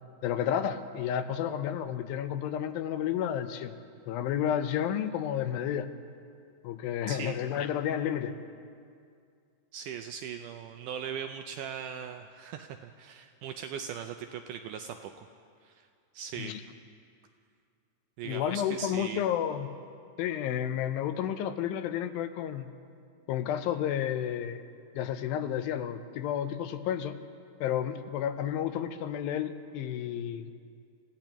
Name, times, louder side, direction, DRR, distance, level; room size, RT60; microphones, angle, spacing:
voice 1, 0.2-3.8 4.1-5.9 6.6-8.4 16.4-16.6 18.2-19.7 20.2-22.7 23.3-24.6 25.0-27.2 27.6-30.5, left 10 dB, 85° left, 9 dB, 2.5 m, -31 dB
voice 2, 7.1-7.4 9.7-15.3 15.6-15.9 16.1-16.5 18.2-19.2, right 8 dB, 80° right, 6 dB, 1.9 m, -39 dB
28.5 x 16.0 x 3.0 m, 2.3 s
omnidirectional pair, 4.2 m